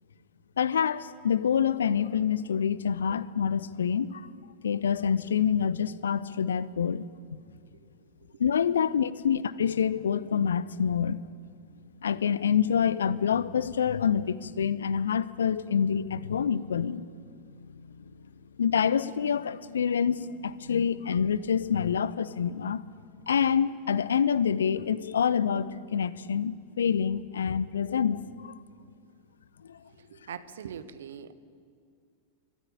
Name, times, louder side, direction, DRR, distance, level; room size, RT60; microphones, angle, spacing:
voice 1, 0.6-4.3 4.6-7.1 8.4-11.2 12.0-17.1 17.6-18.0 18.6-22.8 23.3-28.5 29.7-29.8, left 7 dB, 65° left, 18 dB, 0.7 m, -27 dB
voice 2, 29.9-31.3, right 8 dB, 65° right, 13 dB, 1.2 m, -42 dB
25.0 x 14.0 x 10.0 m, 2.2 s
figure-of-eight pair, 90°, 0 cm